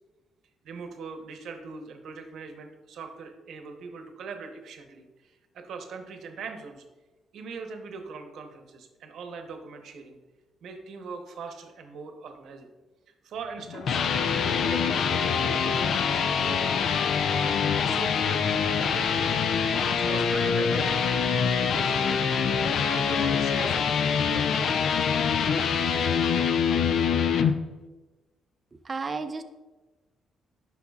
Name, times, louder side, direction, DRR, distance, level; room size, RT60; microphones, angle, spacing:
voice 1, 0.6-6.8 7.3-10.2 10.6-12.7 13.2-16.6 17.3-19.3 19.8-21.2 21.5-22.2 22.8-24.6, right 4 dB, 70° right, 5 dB, 0.9 m, -41 dB
sound 1, 13.6-27.5, left 6 dB, 70° left, 0.5 m, -25 dB
voice 2, 28.8-29.4, right 4 dB, 35° right, 8 dB, 0.5 m, -32 dB
10.0 x 5.9 x 2.4 m, 1.2 s
cardioid pair, 90°, 0 cm